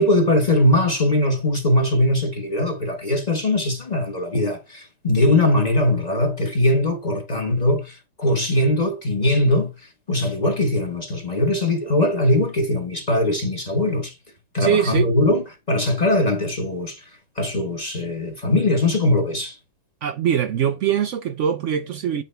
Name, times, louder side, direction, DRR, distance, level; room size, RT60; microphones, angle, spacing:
voice 1, 0.0-9.7 10.1-14.1 14.5-17.0 17.4-19.6, left 1 dB, 25° left, 1.1 m, -21 dB
voice 2, 14.6-15.1 20.0-22.2, right 9 dB, 80° right, 0.6 m, -22 dB
8.7 x 3.4 x 4.4 m
omnidirectional pair, 1.8 m